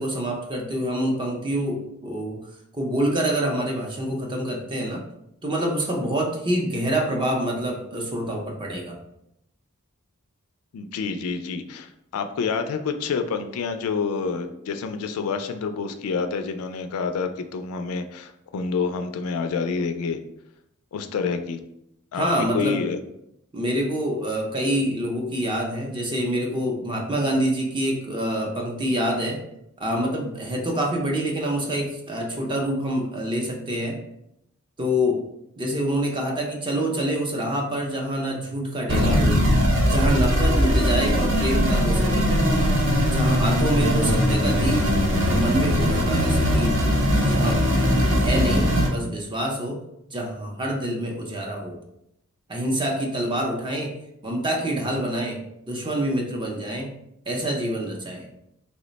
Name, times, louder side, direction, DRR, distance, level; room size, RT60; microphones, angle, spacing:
voice 1, 0.0-2.4 2.7-5.0 5.4-9.0 22.1-22.8 23.5-29.4 29.8-34.0 34.8-35.2 35.6-39.4 39.9-42.4 43.1-44.8 45.2-46.8 47.3-47.7 48.1-49.8 50.1-51.8 52.5-53.9 54.2-56.9 57.3-58.2, right 1 dB, 20° right, 1 dB, 0.5 m, -26 dB
voice 2, 10.7-20.2 20.9-21.6 22.1-22.3 22.5-23.0, left 5 dB, 75° left, 8 dB, 0.3 m, -28 dB
sound 1, 38.9-48.9, equal, 55° right, 0.7 m, -20 dB
3.1 x 2.1 x 3.9 m, 0.80 s
head